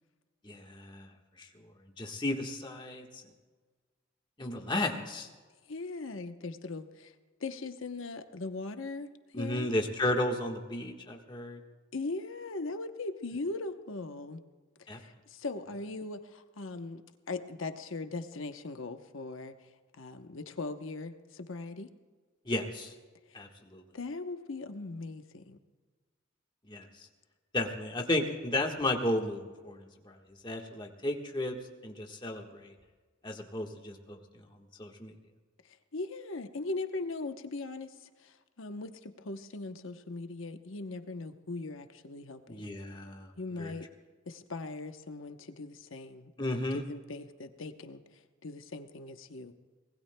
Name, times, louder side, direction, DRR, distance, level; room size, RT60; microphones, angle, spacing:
voice 1, 0.4-1.1 1.4-1.5 2.0-3.2 4.4-5.3 9.3-11.6 14.9-15.0 22.4-22.9 23.3-23.8 26.7-26.9 27.5-30.2 30.4-31.6 31.8-32.7 33.2-35.1 42.5-43.3 43.6-43.7 46.4-46.8, left 1 dB, 20° left, 2 dB, 1.4 m, -34 dB
voice 2, 5.7-7.1 7.4-9.7 11.9-14.4 14.9-17.0 17.3-19.5 19.9-21.9 23.3-23.4 23.9-25.6 35.9-37.9 38.2-42.6 43.4-43.9 44.3-48.0 48.4-49.5, left 3 dB, 70° left, 7 dB, 0.9 m, -39 dB
25.0 x 20.0 x 2.2 m, 1.4 s
head